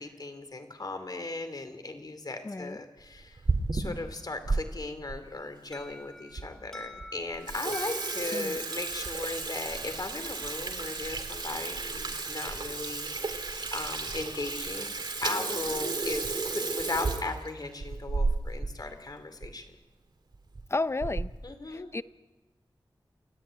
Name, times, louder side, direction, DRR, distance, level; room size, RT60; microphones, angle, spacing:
voice 1, 0.0-3.4 3.7-14.9 15.2-19.7 21.4-21.9, left 2 dB, 50° left, 8 dB, 3.0 m, -37 dB
voice 2, 2.4-2.8 8.3-8.6 20.7-21.3 21.7-22.0, left 2 dB, 30° left, 14 dB, 0.7 m, -32 dB
Water tap faucet / Sink (filling or washing), 3.2-4.6 5.1-5.2 5.9-6.0 6.4-6.5 6.8-7.0 7.3-18.7 19.0-19.1 19.4-19.5 20.3-20.6 21.0-21.4, right 3 dB, 65° right, 2.4 m, -33 dB
Alarm, 5.7-10.5, left 1 dB, 5° left, 3.0 m, -49 dB
28.5 x 13.0 x 9.0 m, 1.1 s
wide cardioid pair, 70°, 8 cm